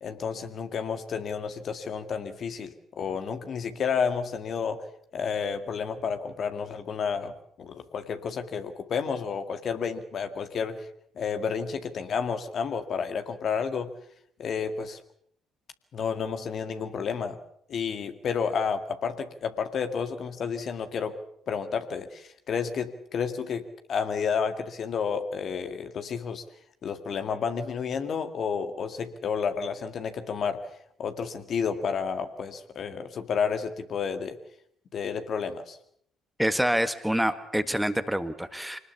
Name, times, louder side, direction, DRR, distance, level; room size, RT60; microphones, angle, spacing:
voice 1, 0.0-10.9 11.2-13.9 14.4-15.0 15.9-17.4 17.7-21.2 21.5-26.4 26.8-30.7 31.0-34.4 34.9-35.8, left 6 dB, 50° left, 8 dB, 2.0 m, -31 dB
voice 2, 36.4-38.8, equal, 5° right, 10 dB, 1.7 m, -26 dB
25.5 x 19.5 x 7.2 m, 0.67 s
figure-of-eight pair, 50°, 0 cm